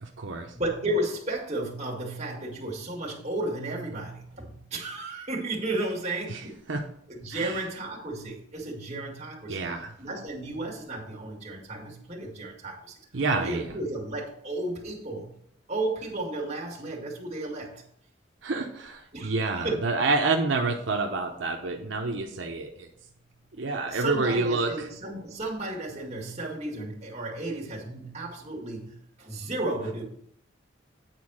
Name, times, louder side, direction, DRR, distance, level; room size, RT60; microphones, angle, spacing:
voice 1, 0.0-0.5 6.3-6.4 6.7-6.8 7.3-7.6 9.5-9.9 13.1-13.7 18.4-22.9 23.6-24.7, right 3 dB, 80° right, 2 dB, 0.8 m, -28 dB
voice 2, 0.5-6.6 7.1-9.7 10.0-13.0 13.3-15.3 15.7-17.8 19.1-19.8 21.8-22.0 23.5-30.0, right 2 dB, 35° right, -2 dB, 2.1 m, -33 dB
9.2 x 4.3 x 6.3 m, 0.68 s
head